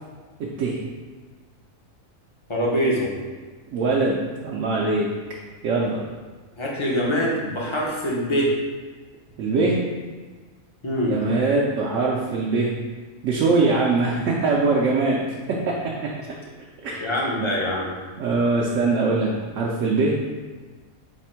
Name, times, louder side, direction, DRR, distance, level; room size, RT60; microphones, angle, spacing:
voice 1, 2.5-3.1 6.6-8.5 10.8-11.1 17.0-17.9, equal, 35° left, -4 dB, 0.5 m, -24 dB
voice 2, 3.7-5.1 5.6-6.0 9.4-9.8 11.1-12.7 13.2-15.2 15.5-15.7 16.8-16.9 18.2-20.1, right 3 dB, 70° right, -3 dB, 0.9 m, -22 dB
4.2 x 2.6 x 4.3 m, 1.4 s
omnidirectional pair, 1.5 m